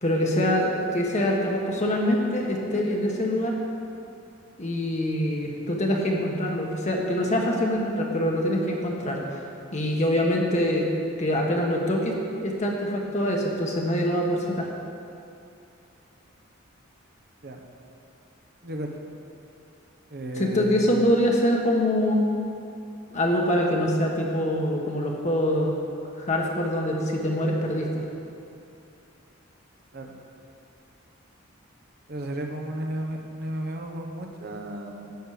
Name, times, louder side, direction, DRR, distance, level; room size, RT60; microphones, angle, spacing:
voice 1, 0.0-3.5 4.6-9.2 9.7-10.9 11.2-14.7 20.4-22.3 23.1-25.7 26.2-28.0, equal, 35° left, -1 dB, 1.5 m, -24 dB
voice 2, 18.6-19.1 20.1-21.0 29.9-30.1 32.1-35.1, right 1 dB, 50° right, 2 dB, 1.1 m, -34 dB
12.5 x 8.7 x 5.0 m, 2.7 s
head